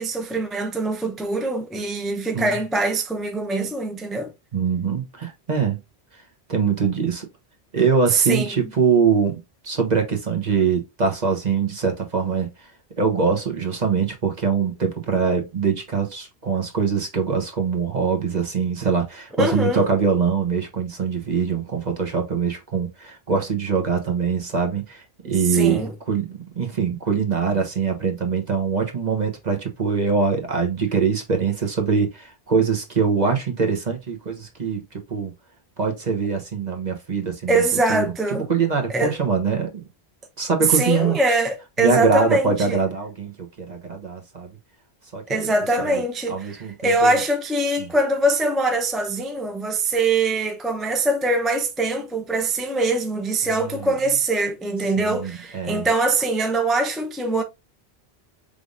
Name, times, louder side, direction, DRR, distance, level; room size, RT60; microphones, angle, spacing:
voice 1, 0.0-4.3 8.1-8.5 19.4-19.9 25.5-25.9 37.5-38.5 38.9-39.2 40.7-42.8 45.3-57.4, right 2 dB, ahead, 0.5 m, -23 dB
voice 2, 4.5-5.8 6.5-7.3 7.7-12.7 13.0-35.3 35.8-37.6 37.9-39.8 40.4-41.2 41.8-44.5 45.1-45.5 45.8-46.0 46.3-47.2 47.8-47.9 53.5-53.9 55.0-55.9, right 5 dB, 45° right, 1.1 m, -23 dB
5.1 x 3.4 x 2.6 m
omnidirectional pair, 1.1 m